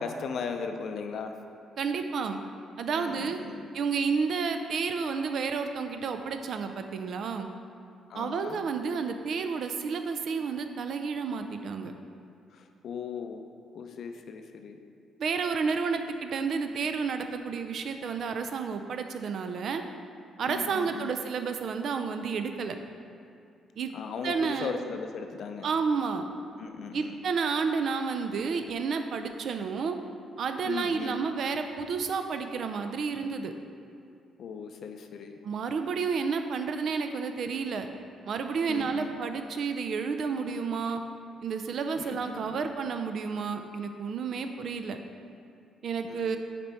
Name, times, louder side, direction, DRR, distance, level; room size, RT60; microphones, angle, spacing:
voice 1, 0.0-1.4 2.9-3.7 8.1-8.6 12.5-13.4 13.7-14.8 20.5-21.2 23.9-25.7 26.6-27.2 30.6-31.2 34.4-35.4 38.7-39.2 41.9-42.7 46.0-46.4, left 5 dB, 65° left, 6 dB, 0.5 m, -38 dB
voice 2, 1.8-2.4 2.8-3.4 3.7-7.5 8.1-11.9 15.2-19.8 20.4-22.8 23.8-23.9 24.2-24.8 25.6-26.2 26.9-30.0 30.4-33.5 35.4-37.9 38.2-41.0 41.4-45.0 45.8-46.4, right 5 dB, 65° right, 7 dB, 0.4 m, -31 dB
6.0 x 4.3 x 4.4 m, 2.4 s
cardioid pair, 90°, 0 cm